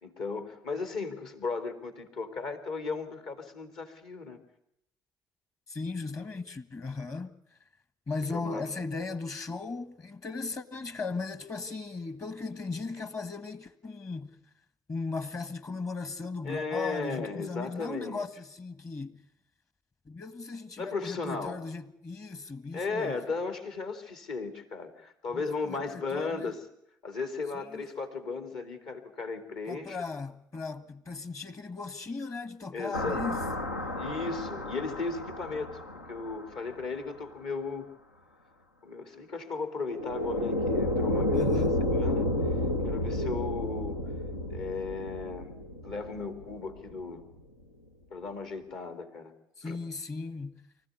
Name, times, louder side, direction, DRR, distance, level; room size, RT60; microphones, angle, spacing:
voice 1, 0.0-4.4 8.3-8.6 16.4-18.2 20.8-21.6 22.7-26.6 27.0-30.0 32.7-33.2 34.0-35.8 36.1-37.8 38.8-41.6 41.9-42.3 42.8-44.0 44.5-45.5 45.8-47.2 48.1-49.3 49.6-49.8, left 4 dB, 60° left, 3.0 m, -35 dB
voice 2, 5.7-7.3 8.1-14.4 14.9-19.2 20.0-23.2 25.3-26.5 27.6-27.8 29.7-33.5 41.3-41.7 49.6-50.6, left 3 dB, 35° left, 1.7 m, -37 dB
sound 1, 32.9-36.8 39.9-47.0, left 1 dB, 85° left, 0.9 m, -31 dB
25.0 x 15.5 x 9.5 m
figure-of-eight pair, 50°, 9 cm